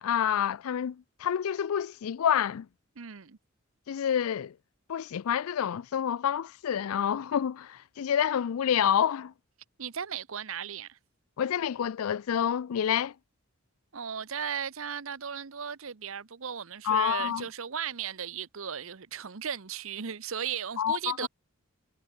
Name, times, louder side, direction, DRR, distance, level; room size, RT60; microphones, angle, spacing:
voice 1, 0.0-2.7 3.9-4.5 4.9-9.3 11.4-13.1 16.8-17.4 20.8-21.3, left 9 dB, 80° left, 0.4 m, -28 dB
voice 2, 3.0-3.4 9.8-11.0 13.9-21.3, right 8 dB, 75° right, 0.9 m, -36 dB
head